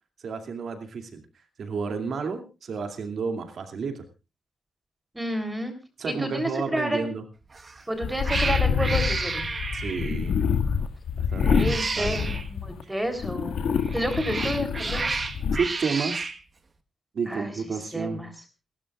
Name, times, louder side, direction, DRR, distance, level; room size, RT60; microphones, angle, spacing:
voice 1, 0.2-1.2 1.6-4.0 6.0-7.2 9.7-10.4 11.2-12.3 12.8-12.9 15.5-16.3 17.1-18.2, right 5 dB, 65° right, 6 dB, 2.5 m, -31 dB
voice 2, 5.1-5.7 6.0-7.1 7.9-9.5 11.4-13.6 13.9-15.1 17.3-17.5 17.9-18.3, equal, 10° right, 7 dB, 3.4 m, -30 dB
Cat, 7.5-7.8 8.2-10.3 11.4-12.5 13.8-16.4, right 4 dB, 35° right, 1.3 m, -31 dB
sound 1, 8.0-12.8 13.2-15.6, left 6 dB, 85° left, 1.9 m, -27 dB
28.0 x 13.0 x 2.4 m, 0.28 s
cardioid pair, 100°, 0 cm